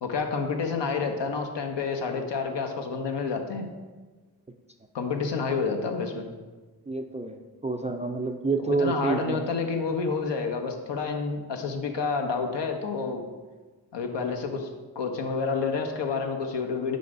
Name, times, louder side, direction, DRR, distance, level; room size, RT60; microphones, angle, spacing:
voice 1, 0.0-3.7 4.9-6.3 8.6-13.2 13.9-14.7 14.9-17.0, left 4 dB, 75° left, 4 dB, 0.8 m, -29 dB
voice 2, 6.9-9.4, right 3 dB, 20° right, 5 dB, 0.3 m, -28 dB
5.0 x 4.0 x 4.8 m, 1.3 s
cardioid pair, 50°, 43 cm